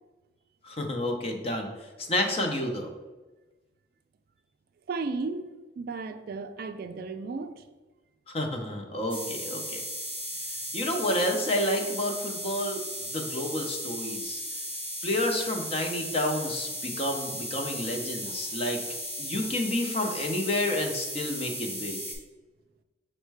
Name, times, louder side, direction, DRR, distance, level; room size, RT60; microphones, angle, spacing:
voice 1, 0.6-1.7 2.0-2.9 8.3-9.8 10.7-12.8 13.1-14.4 15.0-18.8 19.2-22.0, left 1 dB, 35° left, 3 dB, 0.6 m, -30 dB
voice 2, 4.9-5.5 5.8-7.6 18.3-18.4 18.9-19.0, right 4 dB, 55° right, 8 dB, 0.3 m, -34 dB
sound 1, 9.1-22.1, equal, 10° left, 0.9 m, -36 dB
5.4 x 2.1 x 4.6 m, 1.2 s
head